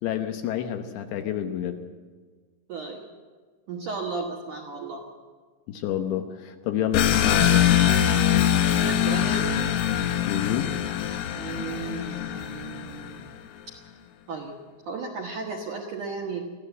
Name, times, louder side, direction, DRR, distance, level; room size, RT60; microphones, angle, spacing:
voice 1, 0.0-1.8 5.7-7.7 10.3-10.7, left 10 dB, 75° left, 6 dB, 2.9 m, -29 dB
voice 2, 2.7-3.0 3.7-5.0 8.8-9.7 11.3-13.3 14.3-14.6 14.9-16.5, right 4 dB, 70° right, 0 dB, 2.0 m, -34 dB
sound 1, 6.9-13.2, left 10 dB, 90° left, 3.9 m, -23 dB
22.5 x 15.0 x 8.0 m, 1.5 s
omnidirectional pair, 5.8 m